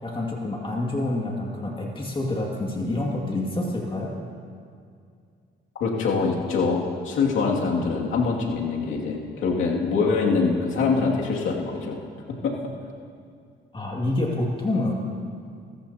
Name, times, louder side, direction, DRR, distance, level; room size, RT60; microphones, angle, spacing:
voice 1, 0.0-4.1 13.7-14.9, left 2 dB, 25° left, -2 dB, 2.3 m, -27 dB
voice 2, 5.8-12.0 12.4-12.5, left 4 dB, 80° left, -2 dB, 2.5 m, -24 dB
24.0 x 14.5 x 2.9 m, 2.3 s
cardioid pair, 90°, 20 cm